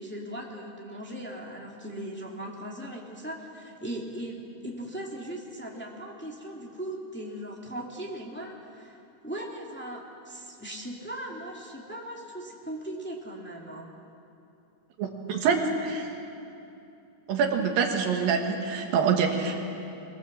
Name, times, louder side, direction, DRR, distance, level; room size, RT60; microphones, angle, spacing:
voice 1, 0.0-9.0 9.2-13.9, right 1 dB, 5° left, -2 dB, 1.4 m, -38 dB
voice 2, 15.0-16.1 17.3-19.5, right 6 dB, 85° right, 3 dB, 3.4 m, -26 dB
23.5 x 17.5 x 7.5 m, 2.7 s
omnidirectional pair, 4.0 m